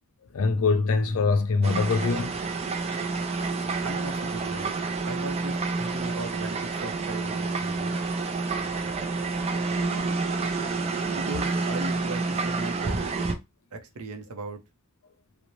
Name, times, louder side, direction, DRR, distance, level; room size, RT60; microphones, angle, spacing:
voice 1, 0.3-2.4, left 4 dB, 65° left, 0.5 m, -23 dB
sound 1, 1.6-13.3, right 3 dB, 30° right, 0.4 m, -29 dB
voice 2, 3.8-4.7 5.0-8.0 9.7-10.1 11.1-13.2 13.7-14.6, right 2 dB, 85° right, 0.6 m, -38 dB
2.6 x 2.0 x 3.0 m
head